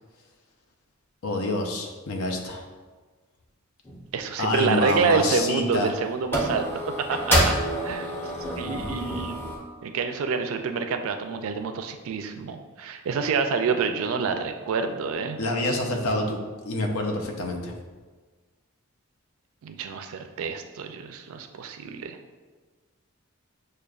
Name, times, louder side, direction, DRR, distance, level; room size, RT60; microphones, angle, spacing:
voice 1, 1.2-2.6 4.4-5.9 15.4-16.4 16.6-17.7, left 2 dB, 75° left, 2 dB, 0.5 m, -27 dB
sound 1, 3.8-4.1 4.9-5.0 5.3-5.9 6.3-9.6, equal, 10° left, 0.5 m, -27 dB
voice 2, 4.1-6.7 7.1-7.5 7.8-8.1 8.6-9.4 9.8-15.4 19.6-22.2, right 5 dB, 70° right, 7 dB, 0.3 m, -27 dB
6.3 x 2.2 x 2.3 m, 1.4 s
head